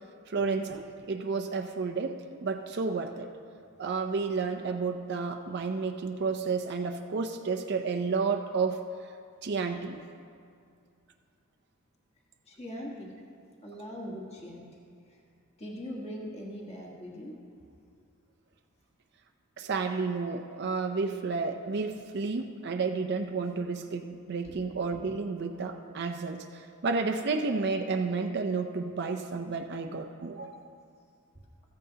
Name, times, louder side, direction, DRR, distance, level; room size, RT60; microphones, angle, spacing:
voice 1, 0.3-3.3 3.8-8.8 9.4-10.0 19.6-30.6, right 4 dB, 50° right, 5 dB, 0.5 m, -31 dB
voice 2, 12.5-13.1 13.6-14.7 15.1-15.2 15.6-17.3 24.4-24.6, equal, 30° left, -2 dB, 1.4 m, -41 dB
15.0 x 14.0 x 2.8 m, 2.3 s
head